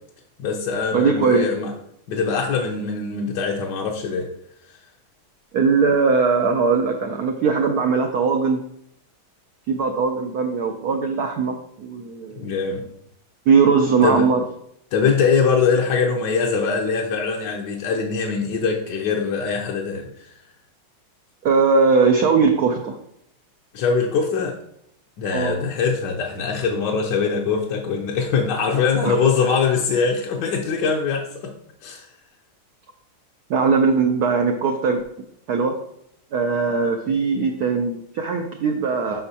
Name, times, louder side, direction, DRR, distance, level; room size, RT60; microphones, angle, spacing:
voice 1, 0.4-1.7 2.1-4.3 12.4-12.8 14.0-14.3 14.9-20.3 23.7-24.6 25.2-31.5 31.8-32.1, left 5 dB, 65° left, 0 dB, 1.2 m, -22 dB
voice 2, 0.9-1.5 5.5-8.6 9.7-12.4 13.5-14.4 21.4-23.0 25.3-25.6 29.0-29.1 33.5-35.0 35.5-35.8 36.3-39.2, right 5 dB, 75° right, 3 dB, 0.9 m, -20 dB
7.9 x 5.2 x 2.8 m, 0.73 s
omnidirectional pair, 2.3 m